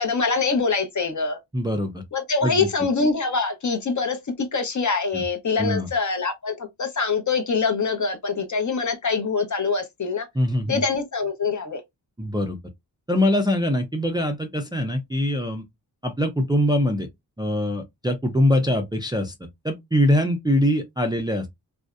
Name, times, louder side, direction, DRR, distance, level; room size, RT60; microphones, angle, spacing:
voice 1, 0.0-1.4 2.1-4.2 4.5-10.3 10.7-11.8, left 4 dB, 40° left, 0.7 m, -24 dB
voice 2, 1.5-2.0 2.4-2.7 5.1-5.2 5.6-5.9 10.3-10.8 12.2-12.6 13.1-15.6 16.0-17.1 17.4-19.3 19.6-21.5, left 1 dB, 10° right, 0.4 m, -23 dB
2.6 x 2.1 x 2.3 m
cardioid pair, 50°, 45 cm